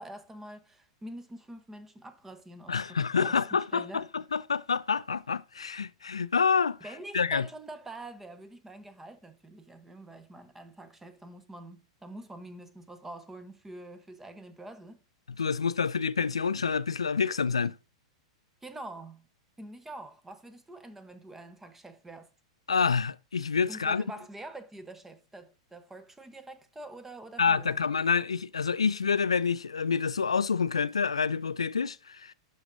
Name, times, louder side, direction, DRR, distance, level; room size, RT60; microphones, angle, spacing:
voice 1, 0.0-3.4 3.7-4.1 6.8-15.0 18.6-19.2 19.6-22.3 23.7-27.8, right 1 dB, 10° right, 0.9 m, -45 dB
voice 2, 2.7-6.8 7.1-7.5 15.4-17.7 22.7-24.0 27.4-32.3, left 5 dB, 80° left, 0.4 m, -27 dB
12.0 x 5.0 x 2.6 m
figure-of-eight pair, 95°, 3 cm